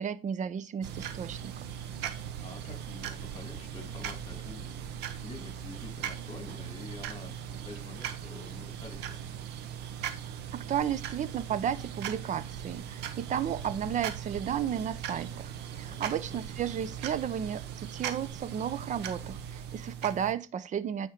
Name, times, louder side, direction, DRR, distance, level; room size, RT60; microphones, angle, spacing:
voice 1, 0.0-1.5 10.5-21.1, right 9 dB, 45° right, 0.7 m, -33 dB
sound 1, 0.8-20.3, right 9 dB, 85° right, 1.1 m, -39 dB
voice 2, 2.4-4.8 5.1-9.2 15.9-16.4, left 3 dB, 35° left, 2.7 m, -47 dB
9.1 x 4.3 x 5.0 m
cardioid pair, 110°, 17 cm